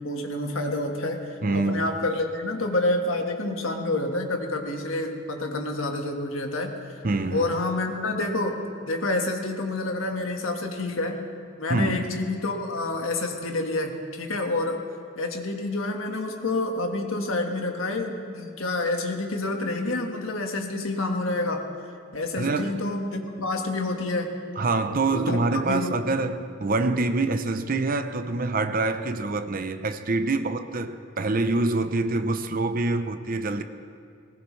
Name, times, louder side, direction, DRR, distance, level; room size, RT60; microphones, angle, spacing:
voice 1, 0.0-7.0 7.3-11.2 11.6-14.8 15.2-21.7 22.1-24.4 25.0-25.4 25.7-26.0, left 2 dB, 85° left, 1.6 m, -28 dB
voice 2, 1.4-1.9 7.0-7.5 11.7-12.1 22.4-22.8 23.4-23.5 24.6-33.6, right 3 dB, 45° right, 0.7 m, -26 dB
20.0 x 19.0 x 3.2 m
head